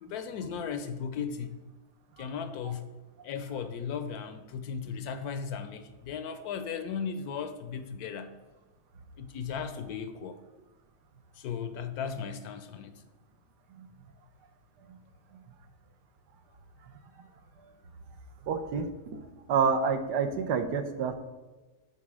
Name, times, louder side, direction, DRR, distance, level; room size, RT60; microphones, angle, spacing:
voice 1, 0.0-1.6 2.2-2.9 3.2-8.3 9.2-10.4 11.4-12.9, left 6 dB, 70° left, 9 dB, 1.0 m, -36 dB
voice 2, 18.5-18.9 19.1-19.2 19.5-21.2, right 6 dB, 75° right, 7 dB, 1.3 m, -28 dB
7.3 x 4.2 x 6.1 m, 1.2 s
omnidirectional pair, 1.8 m